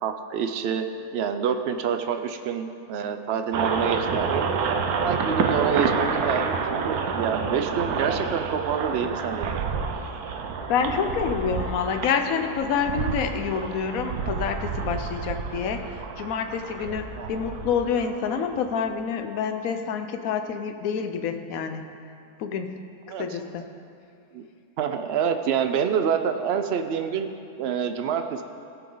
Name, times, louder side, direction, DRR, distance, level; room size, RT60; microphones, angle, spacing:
voice 1, 0.0-4.5 5.0-9.6 17.2-17.5 23.1-23.4 24.3-24.4 24.8-28.4, right 7 dB, 60° right, 7 dB, 0.7 m, -27 dB
sound 1, 3.5-18.9, right 5 dB, 85° right, 1.2 m, -29 dB
voice 2, 10.7-21.8 22.4-22.8 23.2-23.6, left 6 dB, 75° left, 7 dB, 1.1 m, -27 dB
16.5 x 6.2 x 3.9 m, 2.5 s
omnidirectional pair, 1.5 m